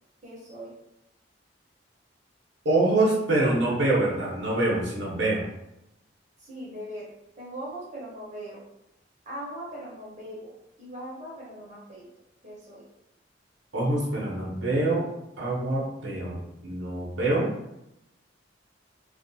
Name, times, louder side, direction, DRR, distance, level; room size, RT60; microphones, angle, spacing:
voice 1, 0.2-0.7 6.4-7.1 7.4-8.6 9.2-10.5 10.8-12.1 12.4-12.8, right 1 dB, 40° right, -6 dB, 0.8 m, -40 dB
voice 2, 2.6-5.5 13.7-15.1 15.4-17.5, right 2 dB, 80° right, -5 dB, 0.8 m, -25 dB
2.5 x 2.4 x 2.6 m, 0.84 s
head